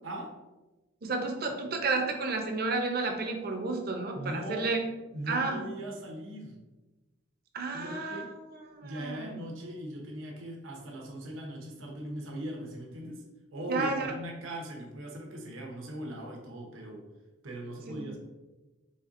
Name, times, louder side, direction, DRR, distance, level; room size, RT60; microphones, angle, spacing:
voice 1, 0.0-0.4 4.1-4.7 5.1-6.6 7.7-8.3 8.8-13.2 13.5-17.1 17.4-18.2, right 1 dB, 85° right, 0 dB, 0.8 m, -39 dB
voice 2, 1.0-4.8 5.3-5.6 7.5-8.3 8.5-9.4 13.7-14.1 17.9-18.1, right 3 dB, 50° right, 3 dB, 0.6 m, -31 dB
4.1 x 3.6 x 2.5 m, 1.1 s
head